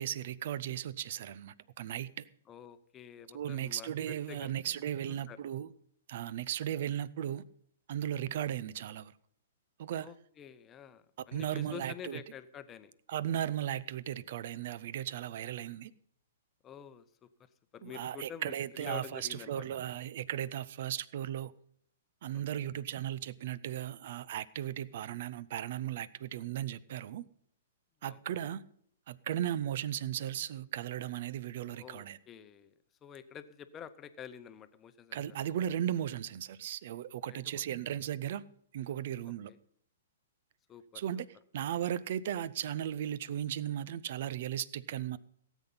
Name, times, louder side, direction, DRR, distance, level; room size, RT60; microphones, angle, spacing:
voice 1, 0.0-2.2 3.3-5.7 6.1-7.4 7.9-9.1 9.8-10.1 11.3-12.2 13.1-15.9 17.8-21.5 22.2-27.3 28.0-28.6 29.1-32.2 35.1-38.4 38.7-39.5 40.9-41.3 41.5-45.2, right 11 dB, 50° right, 0.6 m, -36 dB
voice 2, 2.5-5.4 10.0-12.9 16.6-19.7 22.3-22.7 28.0-28.4 31.7-32.7 33.0-35.4 37.3-37.6 39.5-39.6 40.7-41.0, left 8 dB, 20° left, 0.8 m, -49 dB
17.0 x 8.2 x 5.7 m
figure-of-eight pair, 110°, 0 cm